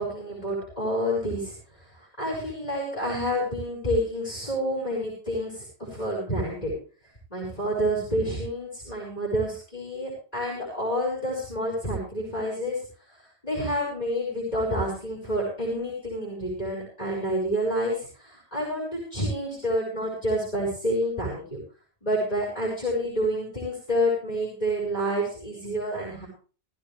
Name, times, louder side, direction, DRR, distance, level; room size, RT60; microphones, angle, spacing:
voice 1, 0.0-1.5 1.8-6.7 7.3-12.8 13.1-21.6 22.0-26.3, equal, 35° left, -3 dB, 5.0 m, -28 dB
15.5 x 14.5 x 3.4 m, 0.38 s
omnidirectional pair, 1.1 m